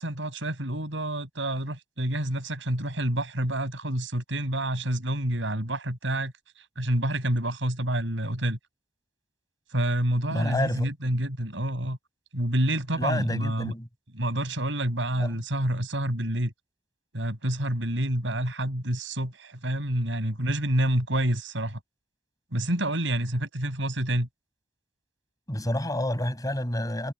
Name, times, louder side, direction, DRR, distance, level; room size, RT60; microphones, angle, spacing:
voice 1, 0.0-8.6 9.7-12.0 12.3-13.7 14.1-16.5 17.1-21.8 22.5-24.3, right 1 dB, 75° right, 7.0 m, -28 dB
voice 2, 10.3-10.9 12.9-13.9 15.2-15.3 25.5-27.1, left 1 dB, 20° left, 6.1 m, -28 dB
head